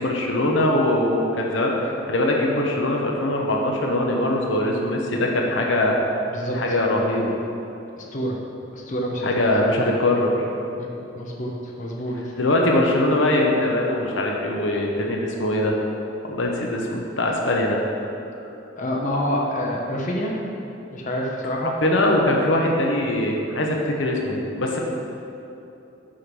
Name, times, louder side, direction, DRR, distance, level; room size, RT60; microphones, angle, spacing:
voice 1, 0.0-6.0 6.5-7.3 9.2-10.3 12.4-15.8 16.2-17.8 21.8-24.8, left 1 dB, 75° left, 0 dB, 1.0 m, -22 dB
voice 2, 6.3-6.8 8.0-8.4 8.7-9.6 10.8-10.9 11.1-12.2 18.7-20.3 20.9-21.7, equal, 45° left, -2 dB, 0.9 m, -27 dB
6.5 x 5.8 x 6.1 m, 2.9 s
head